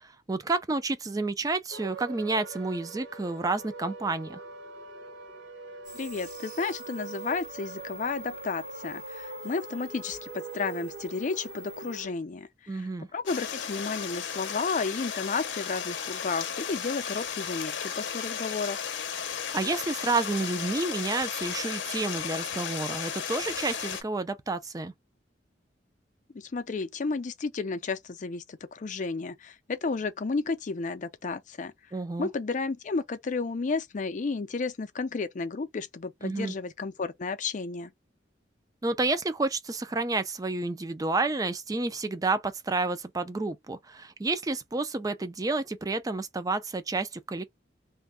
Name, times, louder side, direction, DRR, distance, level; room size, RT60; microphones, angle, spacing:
voice 1, 0.0-4.4 12.7-13.1 19.5-24.9 31.9-32.3 36.2-36.5 38.8-47.4, right 3 dB, 20° right, 0.4 m, -30 dB
sound 1, 1.7-12.1, right 4 dB, 80° right, 0.8 m, -43 dB
sound 2, 5.8-12.0, equal, 45° right, 1.3 m, -46 dB
voice 2, 5.9-12.5 12.7-18.8 26.3-31.7 32.2-37.9, left 4 dB, 45° left, 0.5 m, -32 dB
Stream, 13.3-24.0, left 7 dB, 85° left, 0.6 m, -34 dB
2.6 x 2.2 x 3.4 m
head